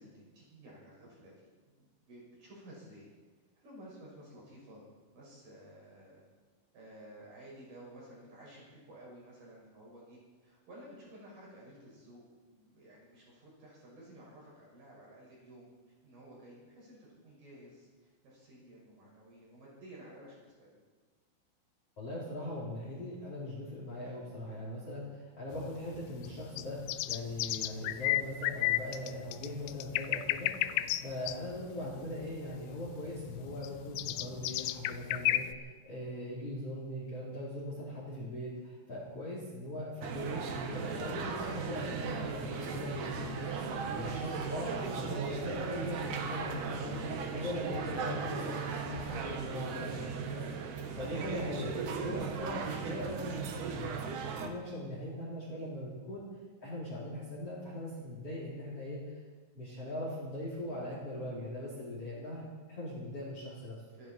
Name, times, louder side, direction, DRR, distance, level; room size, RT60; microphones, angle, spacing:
voice 1, 0.0-3.1 3.6-4.8 5.1-6.2 6.7-15.7 16.0-20.7 30.6-30.9 38.1-38.3 63.9-64.1, right 1 dB, 45° right, -4 dB, 7.2 m, -54 dB
voice 2, 22.0-30.5 31.0-43.5 43.9-47.0 47.3-50.4 51.0-53.9 54.4-56.2 56.6-59.2 59.6-63.8, left 1 dB, 35° left, -4 dB, 3.4 m, -40 dB
sound 1, 25.5-35.5, left 15 dB, 85° left, 2.4 m, -34 dB
sound 2, 40.0-54.5, right 5 dB, 65° right, 2.0 m, -37 dB
26.0 x 12.5 x 4.5 m, 1.3 s
omnidirectional pair, 5.6 m